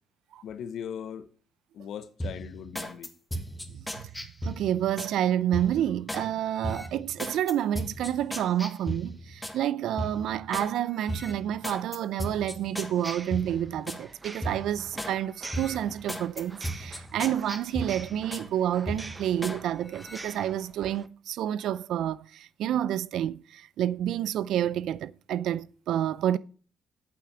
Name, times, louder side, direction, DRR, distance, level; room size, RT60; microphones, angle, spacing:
voice 1, 0.4-1.3 1.7-3.1, left 8 dB, 75° left, 1.0 m, -39 dB
sound 1, 2.2-5.1 5.5-6.3 6.6-9.6 10.0-10.7 11.1-14.0 14.4-15.2 15.5-18.5 18.9-19.6 19.9-20.2, equal, 10° left, 1.6 m, -36 dB
voice 2, 3.7-4.1 4.4-26.4, right 11 dB, 80° right, 0.5 m, -29 dB
sound 2, 13.0-21.1, right 3 dB, 25° right, 0.9 m, -46 dB
8.6 x 7.8 x 6.9 m
cardioid pair, 90°, 0 cm